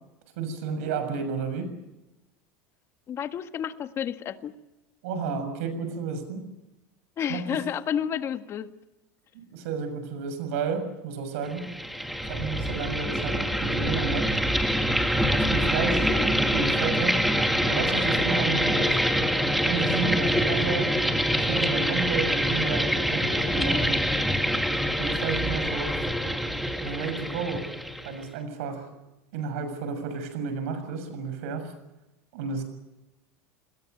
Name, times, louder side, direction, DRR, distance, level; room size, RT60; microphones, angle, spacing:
voice 1, 0.4-1.7 5.0-6.4 7.3-7.4 9.5-11.7 12.3-14.3 15.3-16.1 16.5-17.4 17.7-19.1 19.6-20.9 21.4-24.0 25.0-25.9 26.8-27.7 28.0-28.9 29.3-31.7 32.3-32.6, right 5 dB, 75° right, 9 dB, 6.7 m, -32 dB
voice 2, 3.1-4.5 7.2-8.7 16.0-16.3, left 9 dB, 35° left, 9 dB, 1.6 m, -31 dB
sound 1, 11.5-28.2, equal, ahead, 2.1 m, -25 dB
28.0 x 21.5 x 6.8 m, 0.97 s
supercardioid pair, 130°, 8 cm